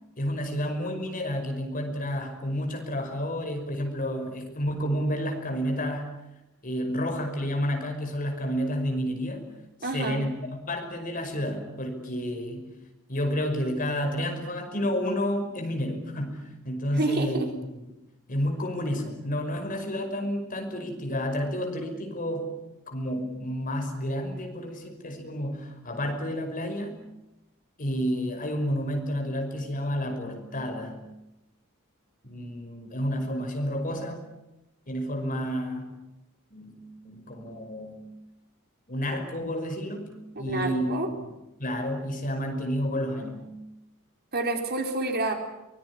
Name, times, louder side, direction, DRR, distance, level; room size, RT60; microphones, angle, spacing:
voice 1, 0.2-6.1 6.6-9.5 9.9-12.7 13.1-17.5 18.3-22.6 22.9-27.0 27.8-31.1 32.2-34.2 34.9-35.9 36.5-38.1 38.9-41.3 41.6-43.6, equal, 40° left, 5 dB, 5.5 m, -30 dB
voice 2, 9.8-10.2 16.9-17.5 40.5-41.1 44.3-45.3, right 2 dB, 45° right, 4 dB, 4.1 m, -28 dB
24.0 x 21.0 x 9.9 m, 0.92 s
head